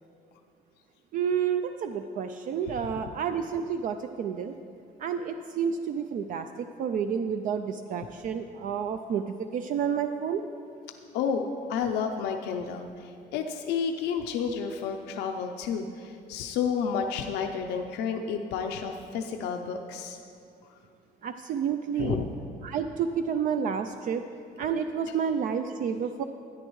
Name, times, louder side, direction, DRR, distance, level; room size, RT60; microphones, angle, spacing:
voice 1, 1.1-4.5 5.0-10.4 21.2-22.2 22.6-24.2 24.6-26.2, right 7 dB, 55° right, 8 dB, 0.4 m, -30 dB
voice 2, 11.1-11.4 11.7-20.2 22.0-22.3, left 6 dB, 85° left, 4 dB, 0.6 m, -31 dB
13.0 x 10.0 x 3.1 m, 2.5 s
cardioid pair, 110°, 17 cm